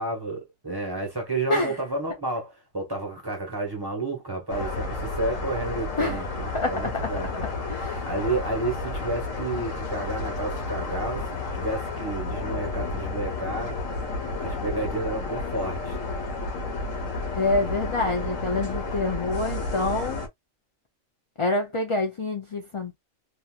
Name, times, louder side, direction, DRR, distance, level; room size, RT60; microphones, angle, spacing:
voice 1, 0.0-7.5 8.1-13.8 14.4-16.0, right 2 dB, 20° right, 1.2 m, -31 dB
sound 1, 4.5-20.3, left 3 dB, 85° left, 1.4 m, -31 dB
voice 2, 6.5-7.1 7.7-8.0 17.4-20.2 21.4-23.0, left 2 dB, 40° left, 0.4 m, -27 dB
2.9 x 2.8 x 2.3 m
omnidirectional pair, 1.3 m